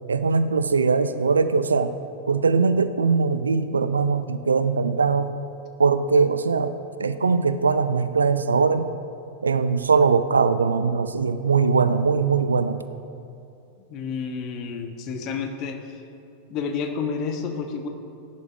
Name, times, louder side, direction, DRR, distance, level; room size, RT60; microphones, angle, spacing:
voice 1, 0.1-1.9 2.3-5.3 5.8-6.7 7.0-8.9 9.4-12.8, right 5 dB, 75° right, 12 dB, 0.5 m, -21 dB
voice 2, 13.9-15.8 16.5-17.9, left 5 dB, 40° left, 5 dB, 1.3 m, -30 dB
18.5 x 10.5 x 3.5 m, 2.6 s
figure-of-eight pair, 90°, 0 cm